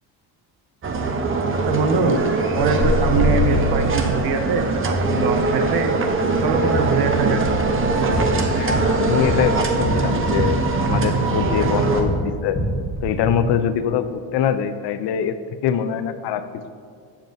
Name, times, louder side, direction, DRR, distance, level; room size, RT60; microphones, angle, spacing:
sound 1, 0.8-12.0, right 2 dB, 25° right, 0.7 m, -21 dB
voice 1, 1.7-2.2 2.5-5.9 6.4-7.4 7.9-8.3, right 5 dB, 55° right, 6 dB, 0.8 m, -23 dB
sound 2, 8.1-12.1 12.4-13.3, equal, 30° left, 1.7 m, -26 dB
voice 2, 8.6-12.6 13.0-15.4 15.6-16.4, left 8 dB, 60° left, 11 dB, 0.5 m, -23 dB
8.6 x 7.3 x 2.6 m, 2.2 s
cardioid pair, 115°, 47 cm